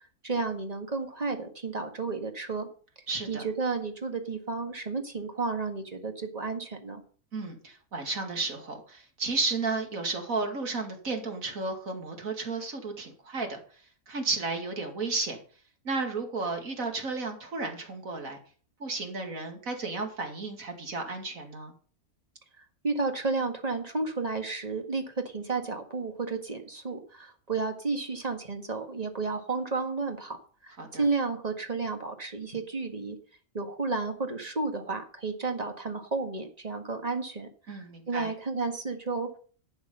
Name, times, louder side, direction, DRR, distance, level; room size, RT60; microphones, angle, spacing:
voice 1, 0.2-2.7 3.3-7.0 22.6-30.4 30.6-33.2 33.5-39.4, right 4 dB, 25° right, 5 dB, 1.8 m, -32 dB
voice 2, 3.1-3.4 7.3-13.6 14.1-15.4 15.8-18.4 18.8-21.7 30.8-31.0 37.7-38.3, right 3 dB, 65° right, 3 dB, 2.7 m, -33 dB
11.5 x 8.0 x 5.5 m, 0.42 s
omnidirectional pair, 1.5 m